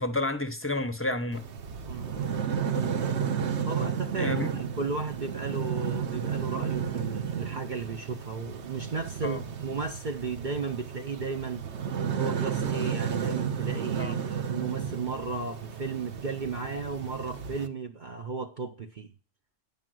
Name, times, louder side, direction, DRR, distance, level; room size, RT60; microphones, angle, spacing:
voice 1, 0.0-1.5 4.2-4.5 9.2-9.4 14.0-14.2, left 2 dB, 10° left, 0.8 m, -30 dB
sound 1, 1.3-17.7, right 7 dB, 65° right, 1.2 m, -32 dB
voice 2, 1.8-2.5 3.7-11.7 12.2-19.1, right 4 dB, 45° right, 0.8 m, -34 dB
10.5 x 5.7 x 7.6 m
omnidirectional pair, 1.3 m